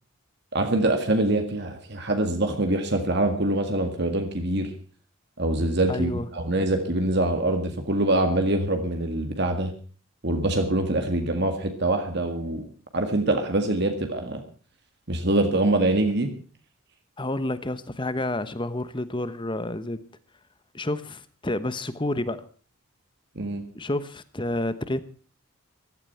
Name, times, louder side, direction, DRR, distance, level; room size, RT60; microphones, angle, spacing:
voice 1, 0.5-4.7 5.4-9.7 10.2-12.7 12.9-14.4 15.1-16.3 23.4-23.6, right 1 dB, 50° right, 5 dB, 1.9 m, -24 dB
voice 2, 5.9-6.3 17.2-20.0 20.7-22.4 23.7-25.0, left 1 dB, 20° left, 14 dB, 1.0 m, -29 dB
15.5 x 13.0 x 5.7 m, 0.41 s
head